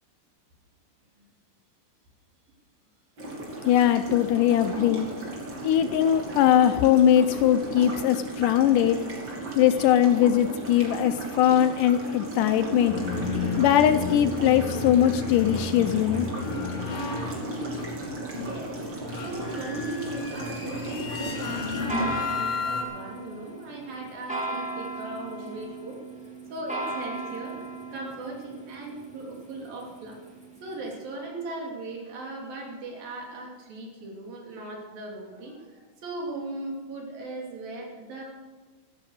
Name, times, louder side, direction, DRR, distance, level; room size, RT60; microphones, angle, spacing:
sound 1, 3.2-22.1, right 1 dB, 35° right, 3.2 m, -35 dB
voice 1, 3.7-5.1 5.6-9.0 9.6-13.0 13.6-16.3, left 10 dB, 80° left, 10 dB, 2.0 m, -21 dB
sound 2, 12.9-22.8, left 4 dB, 45° left, 2.6 m, -33 dB
voice 2, 18.3-18.8 19.2-26.0 26.5-30.2 30.6-38.2, right 2 dB, 75° right, -1 dB, 4.6 m, -38 dB
sound 3, 20.7-30.9, right 2 dB, 5° right, 0.5 m, -37 dB
14.0 x 13.5 x 6.5 m, 1.3 s
omnidirectional pair, 4.1 m